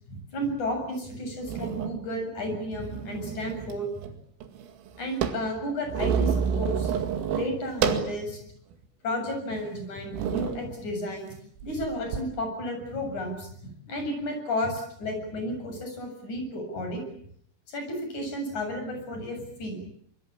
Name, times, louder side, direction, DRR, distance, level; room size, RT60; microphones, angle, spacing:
voice 1, 0.1-3.9 5.0-6.9 7.3-8.4 9.0-11.3 11.6-13.5 13.9-17.0 17.7-19.8, left 1 dB, 35° left, 4 dB, 8.7 m, -32 dB
sound 1, 0.8-0.9 1.4-2.0 2.7-3.8 4.0-4.1 4.4-8.2 8.7-8.8 9.5-9.7 10.1-10.6 11.6-12.2, right 7 dB, 80° right, 4.7 m, -29 dB
25.0 x 23.0 x 8.8 m, 0.68 s
omnidirectional pair, 5.9 m